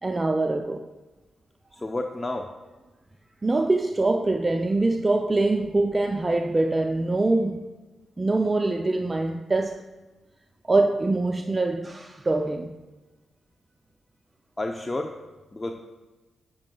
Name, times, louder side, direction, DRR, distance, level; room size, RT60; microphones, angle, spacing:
voice 1, 0.0-0.9 3.4-7.7 8.2-9.8 10.7-12.8, right 2 dB, 30° right, 0.5 m, -24 dB
voice 2, 1.8-2.5 14.6-15.2 15.5-15.8, left 2 dB, 25° left, 0.6 m, -30 dB
17.5 x 6.2 x 2.3 m
supercardioid pair, 55°, 0 cm